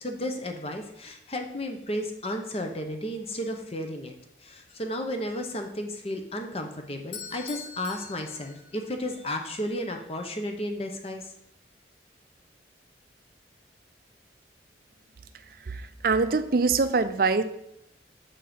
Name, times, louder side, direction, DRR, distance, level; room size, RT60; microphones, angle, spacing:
voice 1, 0.0-4.1 4.4-11.3, left 1 dB, 30° left, 4 dB, 0.8 m, -33 dB
Bell / Doorbell, 7.1-9.2, left 6 dB, 85° left, 1.0 m, -43 dB
voice 2, 15.6-17.4, right 4 dB, 50° right, 11 dB, 0.5 m, -24 dB
7.5 x 4.4 x 5.0 m, 0.77 s
head